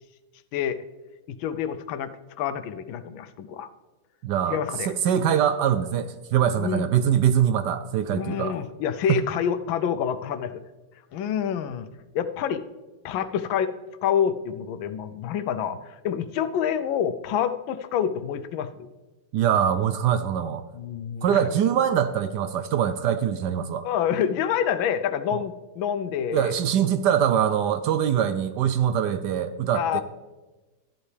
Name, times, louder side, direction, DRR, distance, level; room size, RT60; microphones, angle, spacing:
voice 1, 1.3-3.7 4.5-4.9 6.6-6.8 8.1-10.6 11.1-11.9 12.1-12.6 13.0-13.7 14.0-18.9 20.7-21.5 23.8-26.5 29.7-30.0, left 8 dB, 85° left, 11 dB, 1.4 m, -27 dB
voice 2, 4.2-4.6 4.9-8.5 9.1-9.2 19.3-20.6 21.2-23.9 25.3-25.4 26.3-30.0, right 9 dB, 75° right, 11 dB, 1.0 m, -23 dB
13.0 x 11.0 x 3.3 m, 1.2 s
omnidirectional pair, 2.1 m